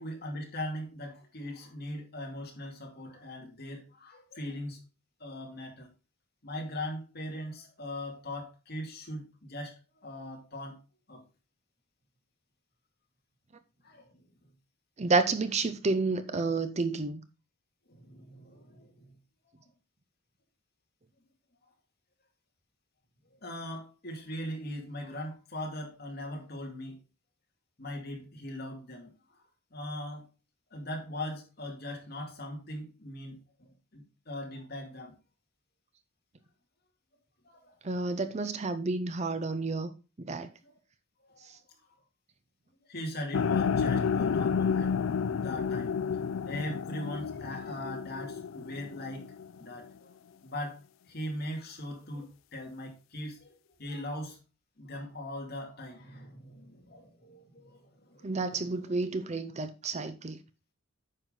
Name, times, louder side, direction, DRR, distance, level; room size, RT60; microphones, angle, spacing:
voice 1, 0.0-4.8 5.2-5.9 6.4-10.8 11.1-11.2 13.8-14.2 17.9-19.1 19.5-19.6 23.3-27.0 27.8-29.4 29.7-30.3 30.7-35.1 37.4-37.7 40.6-40.8 41.3-41.4 42.8-45.0 45.4-45.9 46.4-49.3 49.6-50.1 50.4-50.8 51.1-54.4 54.8-58.9, left 1 dB, 45° left, 2.4 m, -40 dB
voice 2, 15.0-17.2 37.8-39.9 40.2-40.5 58.2-60.4, right 3 dB, 30° right, 0.6 m, -30 dB
sound 1, 43.3-49.5, left 6 dB, 65° left, 0.4 m, -30 dB
9.1 x 5.9 x 3.8 m
head